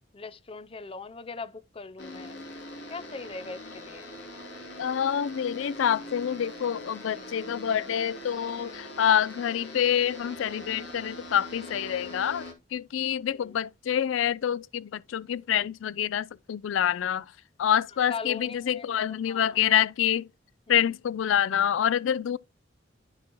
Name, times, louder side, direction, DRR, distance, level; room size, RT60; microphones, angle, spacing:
voice 1, 0.1-2.4 2.9-4.1 13.3-13.6 18.1-19.6 20.7-20.9, left 4 dB, 30° left, 0.5 m, -40 dB
sound 1, 2.0-12.5, left 1 dB, 60° left, 2.6 m, -42 dB
voice 2, 4.8-12.4 12.7-17.2 17.6-20.3 20.7-22.4, left 9 dB, 80° left, 0.4 m, -27 dB
11.5 x 6.0 x 3.0 m
head